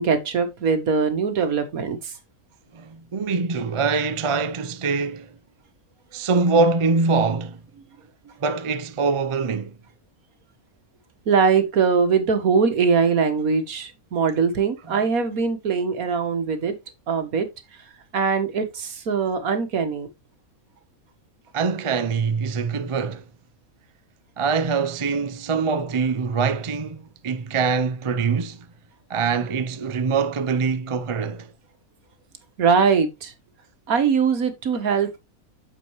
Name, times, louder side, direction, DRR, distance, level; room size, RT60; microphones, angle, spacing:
voice 1, 0.0-2.1 11.3-16.7 17.1-17.5 18.1-20.1 32.6-33.3 33.9-35.2, right 5 dB, 85° right, 1.8 m, -21 dB
voice 2, 2.7-5.3 6.1-7.6 8.4-9.8 14.9-15.0 21.5-23.2 24.4-28.7 29.1-31.5, right 4 dB, 45° right, 0.4 m, -24 dB
8.7 x 6.8 x 3.1 m
omnidirectional pair, 1.5 m